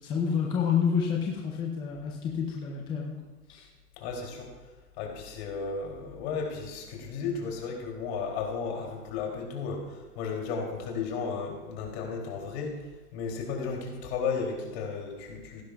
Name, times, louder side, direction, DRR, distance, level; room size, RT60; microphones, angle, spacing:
voice 1, 0.0-3.2 3.5-3.7, left 7 dB, 10° left, -1 dB, 0.5 m, -29 dB
voice 2, 4.0-15.6, left 5 dB, 40° left, 1 dB, 2.9 m, -34 dB
16.5 x 11.5 x 2.3 m, 1.2 s
hypercardioid pair, 135°, 47 cm